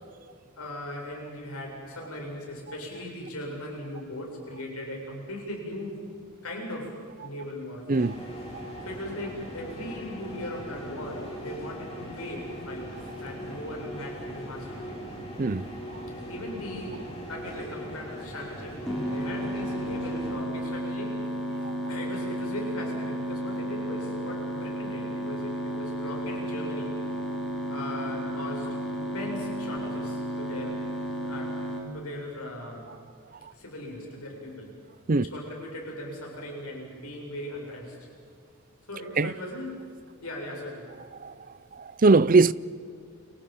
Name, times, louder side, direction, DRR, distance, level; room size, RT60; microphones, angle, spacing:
voice 1, 0.6-6.0 6.4-8.1 8.8-15.0 16.2-21.2 21.6-26.9 27.7-30.8 31.3-31.6 31.9-32.9 33.5-34.7 35.1-38.0 38.9-39.8 40.2-40.9, left 1 dB, 85° left, 7.6 m, -38 dB
sound 1, 7.9-20.3, equal, 25° left, 7.7 m, -40 dB
voice 2, 8.5-8.8 15.4-16.0 21.6-21.7 35.1-35.3 39.2-39.3 41.2-41.3 41.7-42.5, right 3 dB, 40° right, 0.6 m, -22 dB
sound 2, 18.9-31.8, equal, ahead, 5.6 m, -33 dB
30.0 x 28.5 x 5.6 m
head